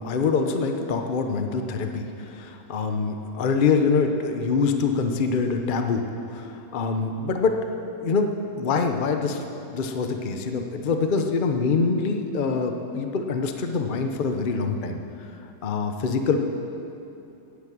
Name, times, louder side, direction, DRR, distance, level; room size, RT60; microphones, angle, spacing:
voice 1, 0.0-6.1 6.3-7.6 8.0-9.4 9.7-15.0 15.6-16.4, left 4 dB, 70° left, 5 dB, 0.4 m, -25 dB
17.0 x 8.5 x 6.2 m, 2.8 s
omnidirectional pair, 2.1 m